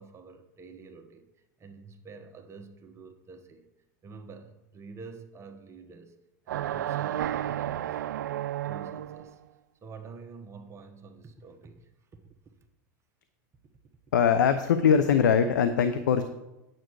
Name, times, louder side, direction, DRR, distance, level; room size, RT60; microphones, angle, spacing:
voice 1, 0.0-3.7 4.0-6.1 6.4-8.0 8.6-9.4 9.8-11.9 12.2-12.3, right 4 dB, 30° right, 5 dB, 1.2 m, -48 dB
sound 1, 6.5-9.3, right 12 dB, 85° right, 0.4 m, -32 dB
voice 2, 14.1-16.2, left 7 dB, 85° left, 10 dB, 0.7 m, -22 dB
9.2 x 7.4 x 4.7 m, 0.96 s
hypercardioid pair, 105°, 10 cm